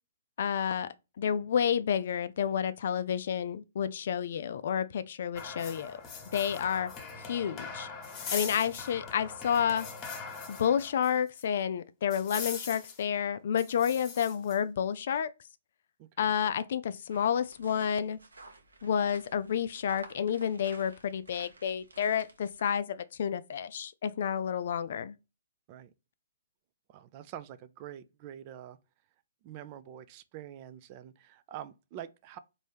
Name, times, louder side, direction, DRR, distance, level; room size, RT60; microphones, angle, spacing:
voice 1, 0.4-6.0 6.3-6.9 7.3-7.9 8.3-9.9 10.5-15.3 16.2-18.2 18.8-25.1, left 8 dB, 55° left, 0.3 m, -30 dB
sound 1, 5.3-11.1 11.4-11.5 12.1-13.0 13.6-14.6, left 5 dB, 25° left, 1.1 m, -41 dB
voice 2, 16.0-16.3 25.7-25.9 26.9-28.8 29.4-32.4, right 11 dB, 35° right, 0.4 m, -46 dB
sound 2, 17.1-22.7, right 2 dB, 80° right, 0.9 m, -53 dB
4.1 x 2.6 x 3.3 m
figure-of-eight pair, 125°, 0 cm